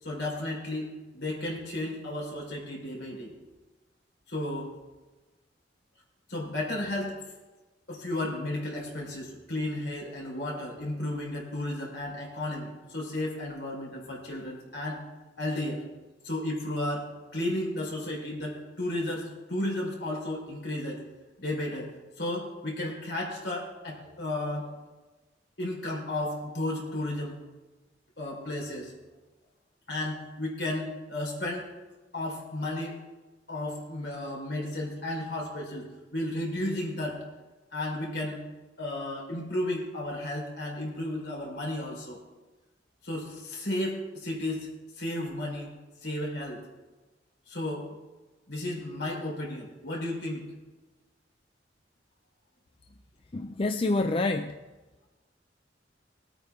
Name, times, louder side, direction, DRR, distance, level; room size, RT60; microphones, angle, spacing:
voice 1, 0.0-3.3 4.3-4.7 6.3-7.2 7.9-15.0 15.4-15.8 16.2-21.0 21.4-21.9 22.2-24.7 25.6-27.4 28.2-28.9 29.9-31.7 32.1-33.0 33.5-37.2 37.7-38.5 38.8-42.2 43.0-44.7 45.0-45.8 46.0-46.6 47.5-47.9 48.5-50.5, left 1 dB, 65° left, -2 dB, 4.0 m, -33 dB
voice 2, 53.3-54.6, left 2 dB, 30° left, 6 dB, 0.5 m, -27 dB
20.5 x 9.0 x 3.6 m, 1.2 s
head